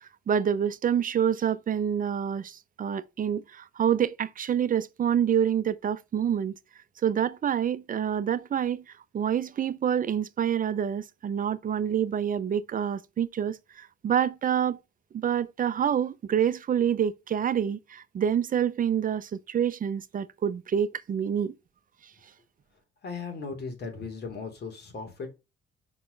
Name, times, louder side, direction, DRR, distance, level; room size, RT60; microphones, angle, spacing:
voice 1, 0.0-6.5 7.0-8.8 9.1-14.8 15.1-21.5, right 8 dB, 45° right, 0.6 m, -27 dB
voice 2, 23.0-25.3, left 4 dB, 55° left, 2.9 m, -37 dB
5.7 x 4.2 x 5.1 m
cardioid pair, 90°, 20 cm